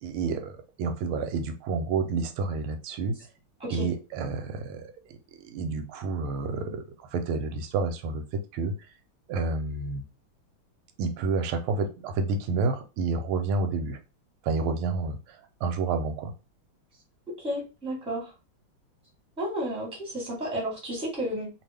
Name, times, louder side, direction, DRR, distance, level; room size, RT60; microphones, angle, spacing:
voice 1, 0.0-3.2 3.7-5.2 5.4-8.2 8.5-8.7 9.3-10.0 11.0-14.0 14.4-16.3, right 4 dB, 90° right, 7 dB, 1.5 m, -29 dB
voice 2, 17.4-18.3 19.4-21.5, equal, 5° right, -3 dB, 1.1 m, -32 dB
3.0 x 2.6 x 3.3 m, 0.30 s
omnidirectional pair, 2.3 m